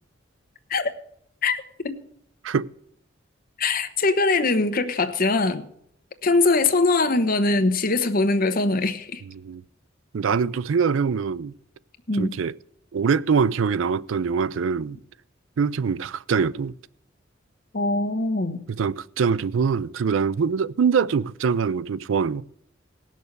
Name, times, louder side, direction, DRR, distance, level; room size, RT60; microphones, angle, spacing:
voice 1, 3.6-5.6 6.2-9.2 12.1-12.3 17.7-18.6, left 3 dB, 50° left, 1.1 m, -22 dB
voice 2, 9.3-9.6 10.1-11.5 12.1-12.5 12.9-15.0 15.6-16.7 18.7-22.4, right 6 dB, 75° right, 0.4 m, -23 dB
18.0 x 6.5 x 6.7 m
head